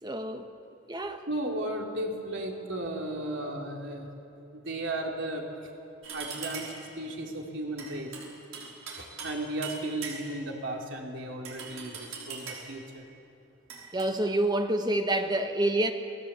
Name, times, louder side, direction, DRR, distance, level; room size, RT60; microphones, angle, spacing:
voice 1, 0.0-0.5 0.9-1.3 13.9-15.9, right 1 dB, 20° right, 6 dB, 1.5 m, -27 dB
voice 2, 1.3-4.1 4.4-5.4 6.1-8.1 9.0-13.0, right 1 dB, 60° right, 0 dB, 3.7 m, -35 dB
sound 1, 6.0-6.9 7.8-9.4 9.6-10.5 11.4-12.8 13.7-14.1, right 5 dB, 75° right, 5.7 m, -41 dB
28.5 x 19.0 x 8.5 m, 2.6 s
head